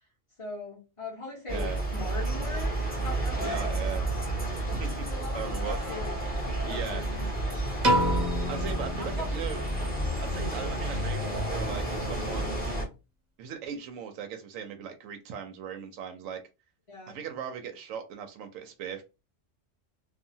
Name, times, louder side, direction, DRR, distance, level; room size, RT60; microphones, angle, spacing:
voice 1, 0.4-2.7 3.0-3.8 5.0-6.2 6.6-7.5 8.9-9.4 16.9-17.2, left 2 dB, 30° left, -4 dB, 0.8 m, -40 dB
sound 1, 1.5-12.8, right 1 dB, 5° left, 1.1 m, -31 dB
voice 2, 1.5-1.8 3.4-4.1 4.7-5.1 5.3-5.8 6.7-7.0 8.5-9.6 10.2-12.6 13.4-16.4 17.1-19.0, right 7 dB, 90° right, 6 dB, 1.0 m, -38 dB
Piano, 7.8-10.1, equal, 40° right, 0.8 m, -28 dB
2.8 x 2.4 x 2.6 m, 0.28 s
omnidirectional pair, 1.3 m